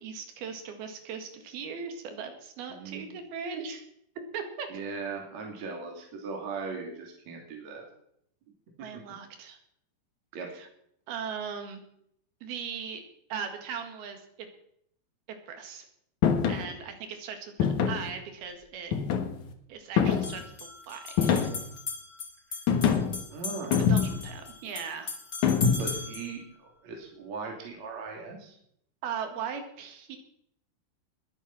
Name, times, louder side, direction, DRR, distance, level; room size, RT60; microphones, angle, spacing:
voice 1, 0.0-3.8 4.3-4.7 8.8-9.6 10.5-10.7 11.1-11.8 12.4-13.0 13.3-14.5 15.5-15.9 16.5-18.9 19.7-21.5 22.5-22.6 23.8-25.1 29.0-30.2, right 6 dB, 85° right, 6 dB, 3.8 m, -38 dB
voice 2, 2.7-3.2 4.7-7.9 8.9-9.0 10.3-10.5 23.3-23.8 25.8-28.6, right 4 dB, 50° right, 1 dB, 3.6 m, -39 dB
sound 1, 16.2-16.7 17.6-18.1 18.9-19.5 20.0-20.4 21.2-21.7 22.7-23.2 23.7-24.3 25.4-26.0, left 7 dB, 60° left, 2.5 m, -25 dB
sound 2, 18.4-18.5 20.1-26.3, left 3 dB, 30° left, 2.2 m, -39 dB
21.0 x 8.3 x 5.9 m, 0.70 s
omnidirectional pair, 4.4 m